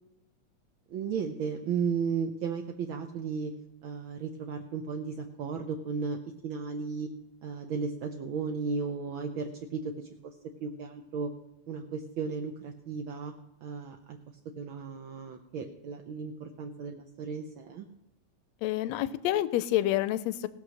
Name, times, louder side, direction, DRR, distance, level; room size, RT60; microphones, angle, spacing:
voice 1, 0.9-3.5 3.8-6.2 6.4-7.1 7.4-10.1 10.6-11.3 11.7-13.3 13.6-14.2 14.6-17.9, right 5 dB, 75° right, 3 dB, 1.1 m, -34 dB
voice 2, 18.6-20.5, left 14 dB, 80° left, 16 dB, 1.7 m, -28 dB
18.0 x 6.1 x 6.3 m, 0.88 s
omnidirectional pair, 3.4 m